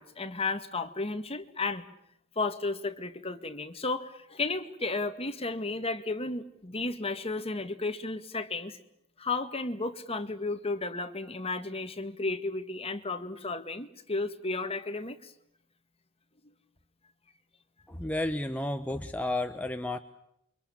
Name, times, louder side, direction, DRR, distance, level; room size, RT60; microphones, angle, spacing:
voice 1, 0.0-1.8 2.4-8.8 9.2-15.3, left 3 dB, 30° left, 1.9 m, -33 dB
voice 2, 17.9-20.0, left 1 dB, 5° left, 1.1 m, -32 dB
29.0 x 24.5 x 7.3 m
head